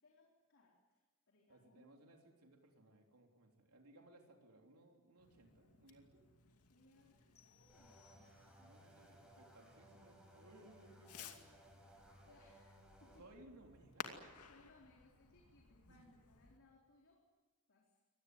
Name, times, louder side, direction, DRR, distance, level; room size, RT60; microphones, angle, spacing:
voice 1, 0.0-2.1 6.7-9.0 12.2-13.3 14.4-17.2 17.7-18.0, left 2 dB, 60° left, -2 dB, 4.2 m, -69 dB
voice 2, 1.5-6.2 8.6-11.5 13.2-14.4 15.9-16.0, right 1 dB, 85° right, 2 dB, 3.5 m, -63 dB
Fireworks, 5.2-16.6, left 6 dB, 85° left, 2.5 m, -57 dB
sound 1, 7.4-8.9, left 9 dB, 30° left, 1.5 m, -72 dB
sound 2, 7.7-13.2, equal, 5° right, 6.0 m, -63 dB
24.5 x 19.0 x 9.5 m, 1.3 s
head